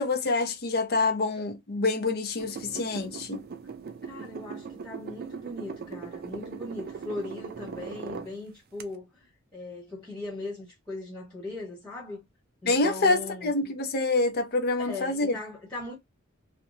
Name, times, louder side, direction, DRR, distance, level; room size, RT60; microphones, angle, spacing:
voice 1, 0.0-3.4 12.6-15.3, left 3 dB, 45° left, 0.6 m, -26 dB
sound 1, 2.4-8.3 8.8-8.9, right 5 dB, 45° right, 0.4 m, -40 dB
voice 2, 4.0-12.3 12.6-13.5 14.8-15.9, left 2 dB, 5° left, 1.4 m, -39 dB
2.6 x 2.2 x 2.7 m
head